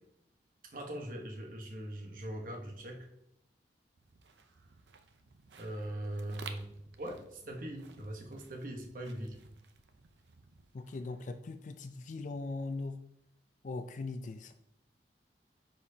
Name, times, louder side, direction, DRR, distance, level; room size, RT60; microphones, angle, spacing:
voice 1, 0.6-3.1 5.6-6.7 7.0-9.4, right 1 dB, 50° right, 2 dB, 1.1 m, -41 dB
sound 1, 4.0-11.2, right 5 dB, 80° right, 0.6 m, -55 dB
voice 2, 10.7-13.0 13.6-14.5, left 3 dB, 45° left, 8 dB, 0.3 m, -40 dB
9.9 x 4.4 x 2.8 m, 0.77 s
head